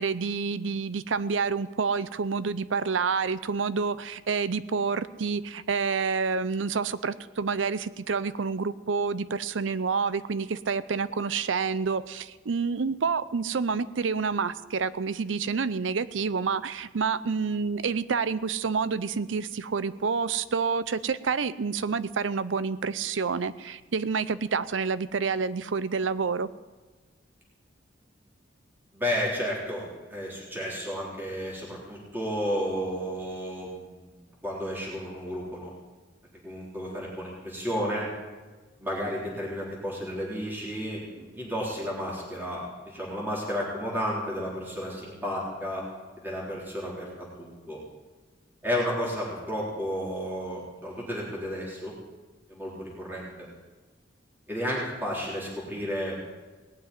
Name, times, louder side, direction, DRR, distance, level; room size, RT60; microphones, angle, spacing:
voice 1, 0.0-26.5, right 5 dB, 80° right, 15 dB, 0.6 m, -28 dB
voice 2, 28.9-34.2 34.4-35.7 36.4-38.1 38.8-45.9 46.2-47.1 47.4-47.8 48.6-51.9 52.5-53.5 54.5-56.2, equal, 10° right, -5 dB, 3.8 m, -32 dB
18.5 x 7.5 x 9.6 m, 1.3 s
head